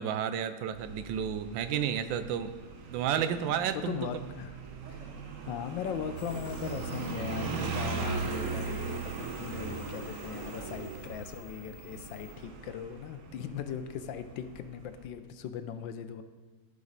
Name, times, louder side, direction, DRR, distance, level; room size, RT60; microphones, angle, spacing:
voice 1, 0.0-2.5 2.9-4.0, right 9 dB, 80° right, 10 dB, 1.3 m, -31 dB
Motorcycle, 0.7-15.0, right 4 dB, 55° right, 1.0 m, -39 dB
voice 2, 3.7-4.6 4.9-5.1 5.4-16.2, left 8 dB, 80° left, 10 dB, 1.3 m, -39 dB
sound 1, 6.2-12.3, left 1 dB, 50° left, 0.9 m, -54 dB
14.5 x 5.2 x 4.0 m, 1.3 s
omnidirectional pair, 2.1 m